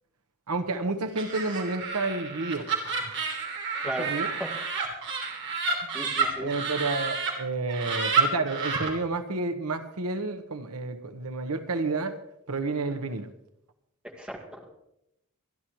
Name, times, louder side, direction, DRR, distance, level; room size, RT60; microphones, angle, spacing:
voice 1, 0.5-3.3 4.0-4.3 6.4-12.2 12.5-13.3, right 3 dB, 85° right, 9 dB, 1.1 m, -30 dB
Laughter, 1.1-7.3 7.7-8.9, right 5 dB, 55° right, 3.2 m, -29 dB
voice 2, 3.8-4.5 5.9-6.5 14.2-14.6, right 1 dB, 5° right, 1 dB, 2.0 m, -36 dB
25.5 x 11.5 x 3.1 m, 0.81 s
head